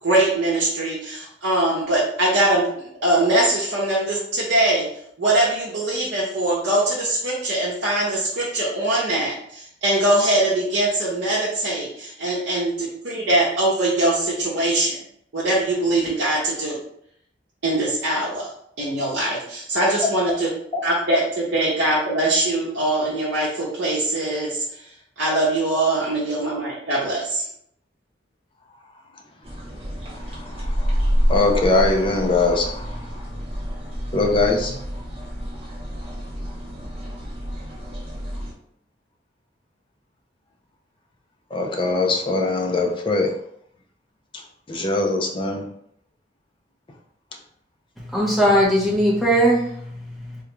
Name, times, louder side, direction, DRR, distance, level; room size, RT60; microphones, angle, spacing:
voice 1, 0.0-2.7 3.0-4.9 5.2-15.0 15.3-16.8 17.6-18.5 18.8-20.5 20.8-24.6 25.2-27.5, right 1 dB, 65° right, 0.8 m, -22 dB
sound 1, 29.4-38.5, equal, 30° right, 0.8 m, -28 dB
voice 2, 30.1-33.2 34.1-34.7 41.5-43.3 44.3-44.4 44.7-45.7, left 3 dB, 25° left, 0.5 m, -22 dB
voice 3, 48.0-50.4, equal, ahead, 0.8 m, -20 dB
3.5 x 2.3 x 3.0 m
head